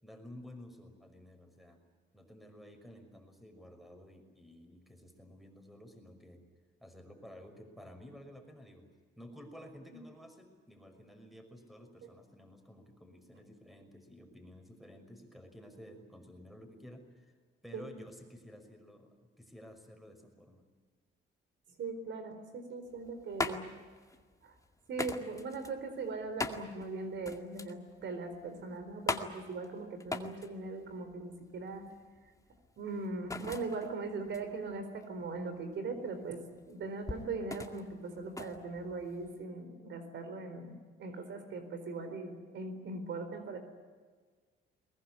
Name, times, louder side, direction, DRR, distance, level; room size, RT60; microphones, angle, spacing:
voice 1, 0.0-1.8 2.1-6.4 6.8-8.9 9.2-17.3 17.6-20.6, equal, ahead, 6 dB, 5.6 m, -53 dB
voice 2, 21.8-23.7 24.4-24.5 24.9-31.9 32.8-36.4 36.7-43.6, right 3 dB, 65° right, 8 dB, 4.2 m, -40 dB
sound 1, 22.9-39.4, left 2 dB, 15° left, 2.1 m, -42 dB
22.0 x 20.5 x 9.7 m, 1.5 s
cardioid pair, 90°, 20 cm